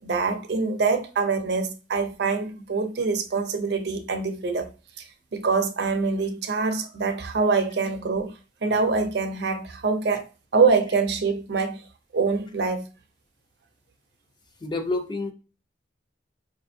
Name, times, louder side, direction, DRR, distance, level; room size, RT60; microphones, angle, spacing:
voice 1, 0.0-4.7 5.0-8.3 8.6-10.3 10.5-11.8 12.1-12.9, right 4 dB, 60° right, 0.5 m, -25 dB
voice 2, 14.6-15.3, left 2 dB, 25° left, 0.4 m, -28 dB
4.7 x 2.6 x 2.5 m
head